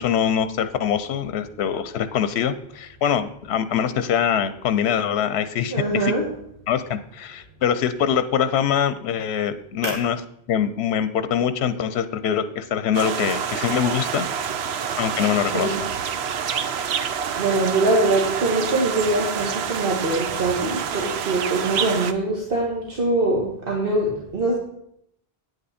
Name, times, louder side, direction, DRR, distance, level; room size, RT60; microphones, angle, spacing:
voice 1, 0.0-6.1 6.7-10.2 10.5-14.3 15.0-15.7, left 8 dB, 85° left, 12 dB, 0.9 m, -23 dB
voice 2, 5.7-6.3 9.8-9.9 15.5-15.8 17.4-24.5, right 2 dB, 65° right, -2 dB, 1.6 m, -23 dB
sound 1, 12.9-22.1, right 7 dB, 85° right, 0.9 m, -27 dB
9.3 x 8.0 x 4.2 m, 0.73 s
omnidirectional pair, 1.1 m